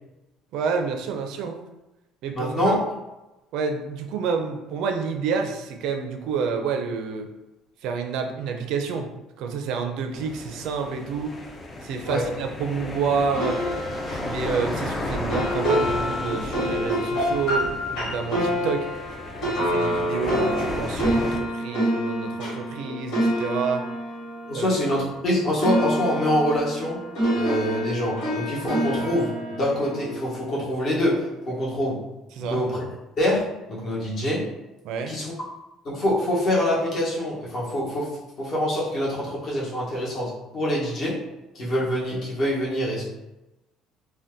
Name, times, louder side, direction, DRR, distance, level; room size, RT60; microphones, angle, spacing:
voice 1, 0.5-1.6 2.2-2.7 3.5-7.3 7.8-9.1 9.4-11.4 11.8-13.6 14.1-18.9 19.4-23.9 24.5-24.7 32.4-32.6 34.8-35.2, right 5 dB, 65° right, 4 dB, 0.4 m, -28 dB
voice 2, 2.3-2.8 12.0-12.3 24.5-27.0 27.3-32.0 32.4-32.8 33.2-34.5 35.1-35.3 35.8-41.2 41.5-43.0, left 1 dB, 40° left, -7 dB, 1.0 m, -25 dB
sound 1, 10.1-21.4, left 1 dB, 20° left, 0.4 m, -34 dB
sound 2, 13.3-25.3 25.6-30.8, equal, 65° left, 1.4 m, -27 dB
2.7 x 2.2 x 3.5 m, 0.98 s
cardioid pair, 155°, 0 cm